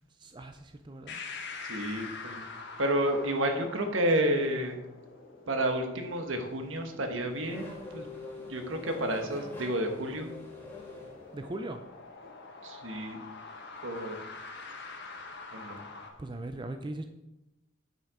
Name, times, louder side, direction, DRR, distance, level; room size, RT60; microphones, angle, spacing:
voice 1, 0.1-1.2 11.3-11.8 16.2-17.1, right 2 dB, 25° right, 6 dB, 0.4 m, -39 dB
sound 1, 1.1-16.1, left 4 dB, 60° left, 1.2 m, -46 dB
voice 2, 1.7-2.5 2.8-4.8 5.5-8.1 8.5-10.3 12.2-12.3 12.6-13.2 13.8-14.2 15.5-15.8, right 1 dB, 70° right, 5 dB, 1.2 m, -30 dB
Race car auto racing / Accelerating revving vroom, 6.3-11.8, left 3 dB, 10° left, 1.9 m, -45 dB
9.2 x 5.5 x 4.9 m, 0.98 s
head